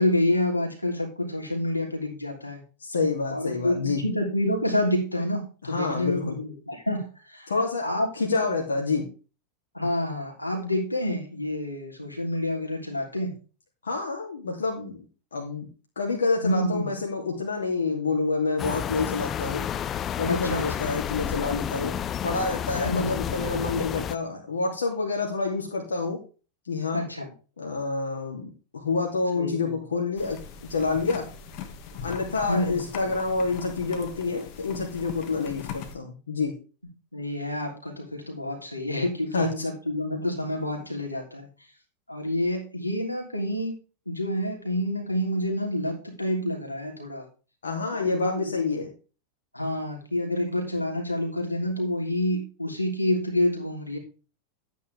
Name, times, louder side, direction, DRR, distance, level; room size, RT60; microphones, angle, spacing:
voice 1, 0.0-2.6 3.3-7.5 7.8-8.5 9.7-13.4 16.4-17.0 20.3-20.6 22.8-23.2 26.9-27.3 29.3-29.8 32.5-32.8 37.1-41.5 42.1-43.7 44.1-47.2 48.0-48.5 49.5-54.0, left 1 dB, 85° left, 1 dB, 3.3 m, -28 dB
voice 2, 2.8-4.0 5.6-6.4 7.5-7.9 8.1-9.1 13.8-15.0 15.3-15.7 16.0-19.7 20.2-26.2 26.6-27.0 27.6-30.4 30.7-31.3 32.0-36.5 39.3-39.6 47.6-48.9, left 4 dB, 70° left, 0 dB, 2.7 m, -28 dB
sound 1, 18.6-24.2, left 9 dB, 25° left, 0.6 m, -31 dB
sound 2, 30.2-35.9, left 7 dB, 45° left, 2.1 m, -40 dB
12.5 x 9.3 x 3.5 m, 0.35 s
figure-of-eight pair, 90°, 0 cm